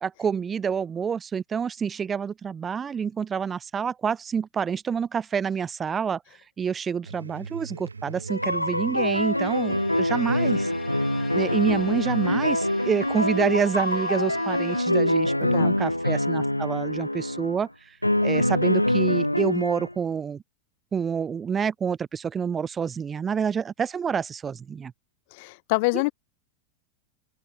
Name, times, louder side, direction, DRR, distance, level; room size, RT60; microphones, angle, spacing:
voice 1, 0.0-6.2 6.6-10.7 11.3-17.7 18.2-20.4 20.9-24.9 25.9-26.1, right 7 dB, 20° right, 0.7 m, -28 dB
sound 1, 7.0-13.8, right 4 dB, 75° right, 2.3 m, -41 dB
sound 2, 8.3-17.6 18.0-19.9, left 1 dB, 85° left, 0.5 m, -25 dB
Bowed string instrument, 9.1-15.2, left 5 dB, 15° left, 4.2 m, -45 dB
voice 2, 15.4-15.7 25.3-26.1, left 27 dB, 50° left, 0.9 m, -26 dB
open air
figure-of-eight pair, 90°, 0 cm